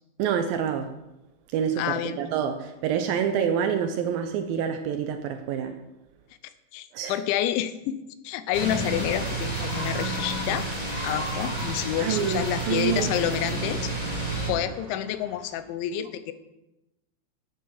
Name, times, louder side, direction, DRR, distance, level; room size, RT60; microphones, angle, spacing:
voice 1, 0.2-0.9 1.5-5.8 6.9-7.2 12.0-13.1, right 8 dB, 85° right, 6 dB, 2.0 m, -27 dB
voice 2, 1.8-2.2 6.7-10.7 11.0-13.9 14.5-16.3, left 11 dB, 85° left, 12 dB, 3.1 m, -29 dB
sound 1, 8.5-14.5, right 2 dB, 15° left, 1.3 m, -30 dB
sound 2, 9.2-15.7, right 2 dB, 40° right, 2.5 m, -45 dB
13.5 x 8.6 x 5.8 m, 0.96 s
omnidirectional pair, 5.2 m